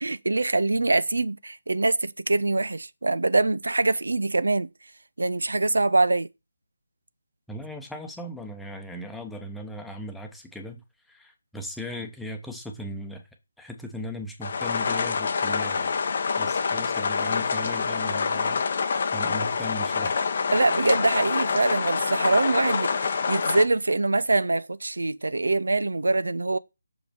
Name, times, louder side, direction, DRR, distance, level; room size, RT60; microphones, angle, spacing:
voice 1, 0.0-4.7 5.2-6.3 20.5-26.6, right 2 dB, 65° right, 0.5 m, -24 dB
voice 2, 7.5-10.8 11.1-13.2 13.6-15.9 16.4-20.2, left 1 dB, ahead, 1.0 m, -38 dB
sound 1, 14.4-23.6, left 5 dB, 40° left, 0.7 m, -26 dB
6.6 x 5.0 x 4.9 m
figure-of-eight pair, 150°, 0 cm